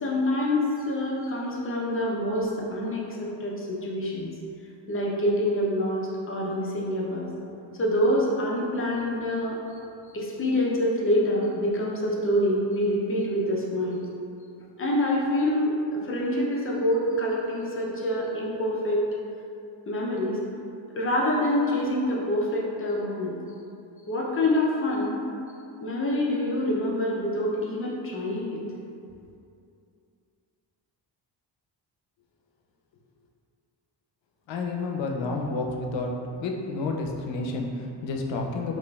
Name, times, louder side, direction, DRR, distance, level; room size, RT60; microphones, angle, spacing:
voice 1, 0.0-4.3 4.9-7.3 7.8-9.6 10.1-14.1 14.8-19.0 19.9-20.4 21.0-23.4 24.1-25.3 25.8-28.6, left 1 dB, 30° left, -4 dB, 0.5 m, -26 dB
voice 2, 34.5-36.1 36.4-38.8, left 3 dB, 85° left, 1 dB, 0.6 m, -30 dB
4.9 x 2.5 x 2.3 m, 2.6 s
cardioid pair, 135°, 44 cm